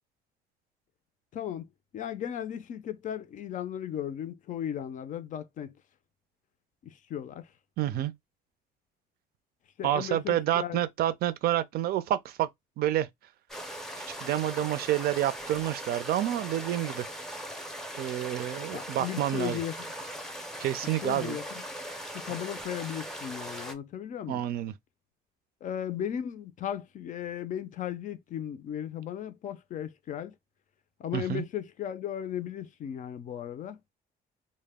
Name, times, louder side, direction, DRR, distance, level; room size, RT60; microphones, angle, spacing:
voice 1, 1.3-1.7 1.9-5.7 6.8-7.5 9.8-10.8 18.7-19.9 21.0-21.6 22.1-24.4 25.6-30.3 31.0-33.8, left 10 dB, 50° left, 0.4 m, -36 dB
voice 2, 7.8-8.1 9.8-12.5 12.8-13.1 14.2-17.1 18.0-19.6 20.6-21.4 24.3-24.7 31.1-31.4, right 12 dB, 65° right, 0.4 m, -28 dB
sound 1, 13.5-23.7, equal, ahead, 0.6 m, -40 dB
2.1 x 2.0 x 3.4 m
cardioid pair, 110°, 17 cm